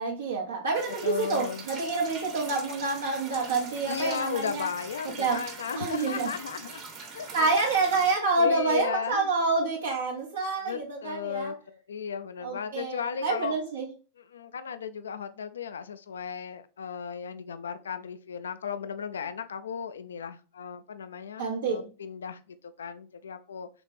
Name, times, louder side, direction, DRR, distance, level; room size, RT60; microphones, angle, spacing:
voice 1, 0.0-4.7 5.2-5.4 5.7-6.3 7.3-11.5 12.4-13.9 21.4-21.8, right 3 dB, 65° right, 0.8 m, -28 dB
sound 1, 0.7-8.2, right 4 dB, 40° right, 1.1 m, -43 dB
voice 2, 1.0-1.7 3.6-6.8 7.1-7.5 8.2-9.3 10.6-13.6 14.2-23.7, left 7 dB, 65° left, 0.3 m, -35 dB
4.1 x 3.2 x 3.3 m
figure-of-eight pair, 90°, 0 cm